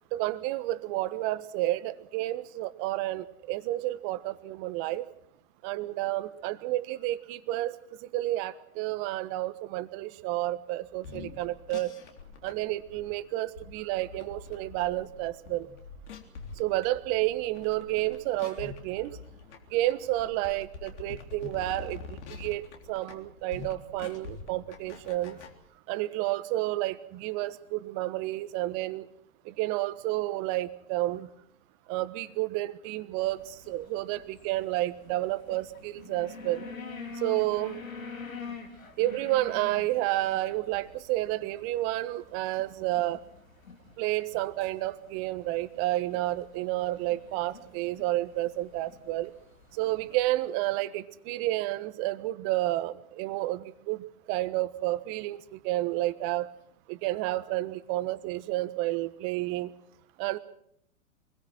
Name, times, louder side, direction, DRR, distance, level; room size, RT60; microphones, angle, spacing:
voice 1, 0.1-5.1 5.6-11.9 12.4-15.7 16.6-19.2 19.7-22.6 22.9-25.4 25.9-29.1 29.4-31.3 31.9-36.6 37.2-37.8 39.0-43.2 44.0-49.3 49.7-56.5 56.9-59.7 60.2-60.4, right 16 dB, 35° right, 13 dB, 1.2 m, -30 dB
sound 1, 10.9-25.5, left 5 dB, 55° left, 3.5 m, -45 dB
sound 2, 33.2-50.3, left 4 dB, 80° left, 4.1 m, -47 dB
25.0 x 21.0 x 6.1 m, 0.71 s
figure-of-eight pair, 110°, 41 cm